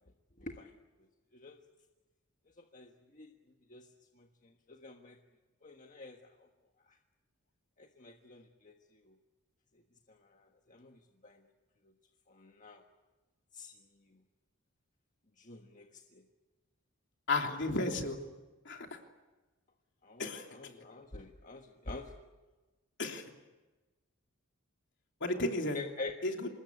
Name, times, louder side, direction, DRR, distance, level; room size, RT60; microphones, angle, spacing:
voice 1, 0.4-0.7 1.3-1.6 2.6-3.3 3.7-3.9 4.1-5.2 5.6-6.5 6.9-7.0 7.8-8.7 9.0-9.1 10.1-11.5 11.8-11.9 12.3-12.8 13.5-13.7 14.1-14.2 15.4-16.2 20.0-22.1 25.7-26.2, left 3 dB, 40° left, 3 dB, 1.5 m, -47 dB
voice 2, 17.3-18.2 18.6-18.9 20.2-20.4 23.0-23.2 25.2-25.8 26.2-26.5, left 2 dB, 60° left, 3 dB, 3.1 m, -33 dB
27.0 x 20.0 x 8.5 m, 1.2 s
head